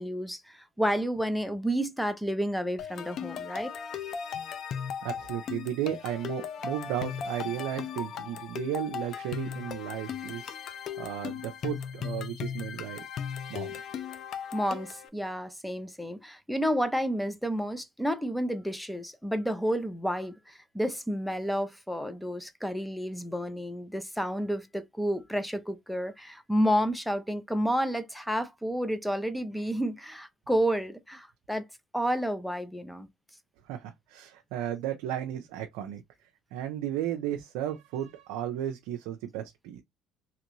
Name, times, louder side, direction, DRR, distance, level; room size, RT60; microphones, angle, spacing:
voice 1, 0.0-3.7 14.5-31.7 31.9-33.1, equal, 5° left, 0.6 m, -30 dB
sound 1, 2.8-15.1, left 7 dB, 60° left, 0.4 m, -37 dB
voice 2, 5.0-10.6 11.0-13.0 13.5-13.7 33.6-36.0 36.5-39.8, right 11 dB, 80° right, 0.5 m, -34 dB
2.9 x 2.5 x 3.0 m
supercardioid pair, 80°, 0 cm